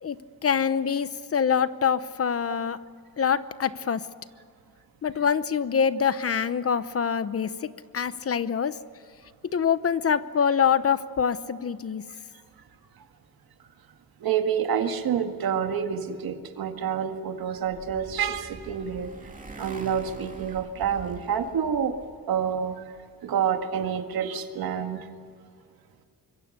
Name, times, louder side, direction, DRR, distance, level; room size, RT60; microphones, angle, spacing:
voice 1, 0.4-2.8 3.2-4.0 5.0-8.8 9.5-12.0, left 7 dB, 40° left, 14 dB, 0.9 m, -25 dB
voice 2, 14.2-19.1 19.6-22.0 22.3-22.8 23.2-25.1, right 8 dB, 90° right, 6 dB, 2.0 m, -28 dB
Motorcycle, 17.2-22.2, right 3 dB, 25° right, 2.6 m, -44 dB
25.5 x 23.0 x 6.7 m, 2.2 s
wide cardioid pair, 130°, 35 cm